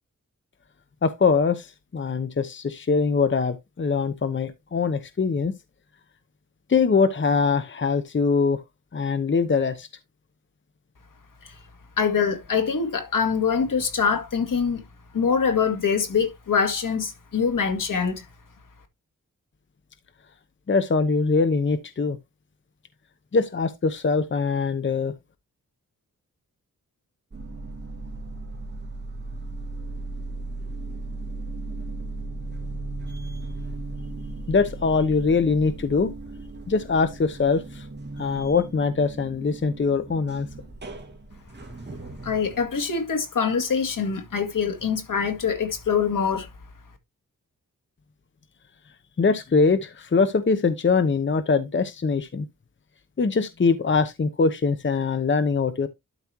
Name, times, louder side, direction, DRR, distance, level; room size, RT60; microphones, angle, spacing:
voice 1, 1.0-5.5 6.7-8.6 8.9-9.9 20.7-22.2 23.3-25.1 34.5-36.1 36.7-37.9 38.2-40.5 49.2-52.5 53.2-55.9, left 4 dB, 35° left, 0.8 m, -22 dB
voice 2, 12.0-14.8 15.1-18.3 42.2-46.5, left 6 dB, 70° left, 2.2 m, -24 dB
sound 1, 27.3-42.6, right 2 dB, 30° right, 2.3 m, -36 dB
12.0 x 5.0 x 2.9 m
wide cardioid pair, 110°, 33 cm